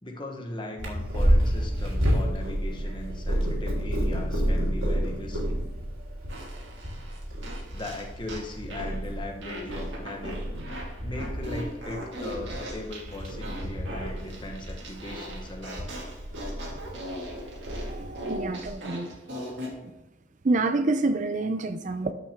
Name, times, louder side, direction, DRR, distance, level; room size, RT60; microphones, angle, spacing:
voice 1, 0.0-5.6 7.7-10.4 11.0-15.8, left 1 dB, 20° left, 2 dB, 1.2 m, -38 dB
Purr, 0.8-18.7, equal, 75° right, 3.3 m, -30 dB
Fart, 6.3-9.0 9.4-19.8, equal, 55° right, 2.0 m, -40 dB
voice 2, 17.9-19.1 19.8-19.9 20.4-22.1, right 2 dB, 35° right, 9 dB, 0.4 m, -27 dB
12.5 x 6.0 x 3.6 m, 0.98 s
head